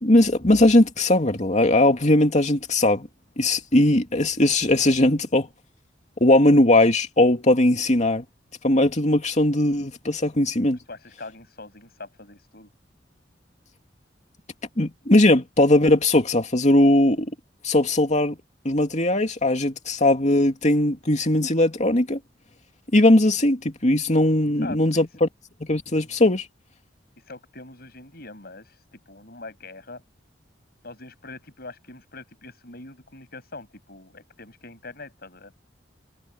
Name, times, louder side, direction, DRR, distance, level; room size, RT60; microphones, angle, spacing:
voice 1, 0.0-3.1 3.4-5.5 6.2-8.2 8.6-10.8 14.8-17.3 17.6-18.4 18.6-22.2 22.9-25.3 25.7-26.4, left 1 dB, 40° left, 2.6 m, -19 dB
voice 2, 10.9-12.7 24.6-25.1 27.2-30.0 30.8-35.5, left 3 dB, 60° left, 7.8 m, -42 dB
head